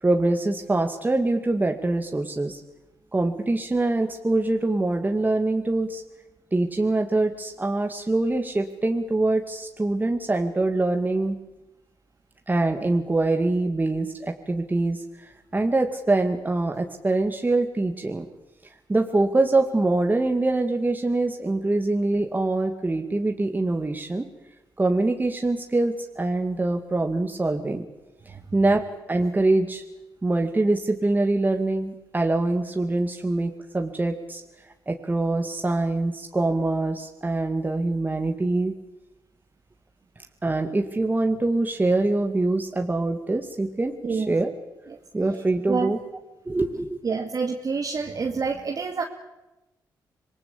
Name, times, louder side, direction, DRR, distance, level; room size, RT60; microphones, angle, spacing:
voice 1, 0.0-2.6 3.1-6.0 6.5-11.4 12.5-18.3 18.9-24.3 24.8-27.9 28.3-29.8 30.2-34.4 34.9-38.7 40.4-44.5 45.1-46.0 46.5-47.0, right 2 dB, 20° right, 4 dB, 2.1 m, -24 dB
voice 2, 44.0-44.4 44.9-45.0 45.7-45.9 47.0-49.0, right 5 dB, 45° right, 2 dB, 2.2 m, -27 dB
26.0 x 19.5 x 8.6 m, 1.0 s
cardioid pair, 65°, 8 cm